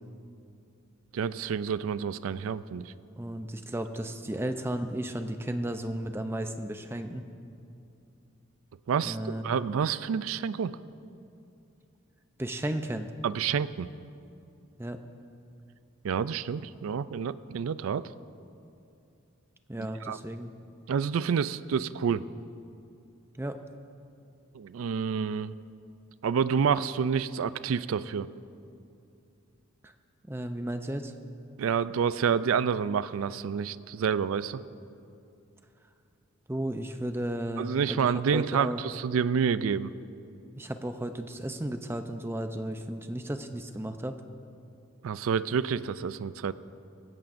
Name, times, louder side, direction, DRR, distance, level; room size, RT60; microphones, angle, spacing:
voice 1, 1.1-2.9 8.9-9.2 9.4-10.8 13.2-13.9 16.0-18.1 19.8-20.2 20.9-22.3 24.5-25.5 26.2-28.3 31.6-34.6 37.6-39.9 45.0-46.5, right 6 dB, 80° right, 16 dB, 0.4 m, -28 dB
voice 2, 3.2-7.3 9.0-9.6 12.4-13.1 14.8-15.0 19.7-20.5 23.4-23.6 29.8-29.9 30.2-31.1 36.5-38.8 40.6-44.2, right 1 dB, 10° right, 7 dB, 0.5 m, -34 dB
18.5 x 15.5 x 2.6 m, 2.6 s
head